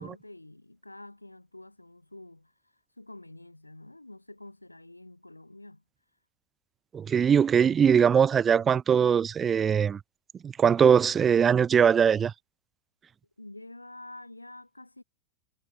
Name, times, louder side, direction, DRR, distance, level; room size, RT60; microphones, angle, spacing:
voice 1, 0.0-2.5 3.0-5.8 13.4-15.0, left 2 dB, 85° left, 1.9 m, -47 dB
voice 2, 6.9-10.0 10.4-12.3, right 7 dB, 20° right, 0.4 m, -21 dB
figure-of-eight pair, 90°, 0 cm